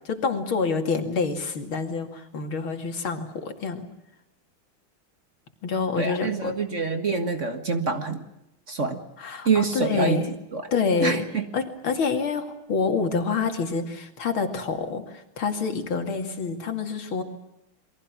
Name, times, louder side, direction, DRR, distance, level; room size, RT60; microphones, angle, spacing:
voice 1, 0.0-3.9 5.6-6.6 9.2-10.3 10.7-11.2 11.5-17.2, left 5 dB, 75° left, 5 dB, 3.2 m, -27 dB
voice 2, 6.0-8.3 8.7-9.0 9.5-10.3 10.5-10.7 11.0-11.5, right 4 dB, 35° right, 7 dB, 1.8 m, -26 dB
28.5 x 22.5 x 6.1 m, 0.89 s
omnidirectional pair, 2.3 m